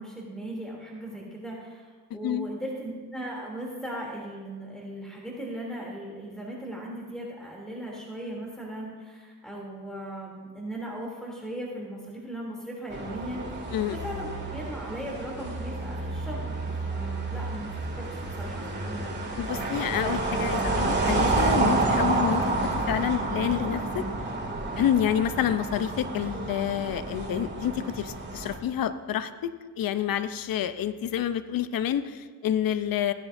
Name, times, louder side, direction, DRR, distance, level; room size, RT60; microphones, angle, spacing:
voice 1, 0.0-19.1, right 1 dB, ahead, -3 dB, 3.0 m, -38 dB
sound 1, 12.9-28.6, right 2 dB, 25° right, 2.4 m, -29 dB
voice 2, 19.4-22.4 22.9-24.0 24.8-33.1, left 10 dB, 60° left, 12 dB, 0.7 m, -28 dB
16.5 x 9.7 x 2.7 m, 1.4 s
supercardioid pair, 65°, 40 cm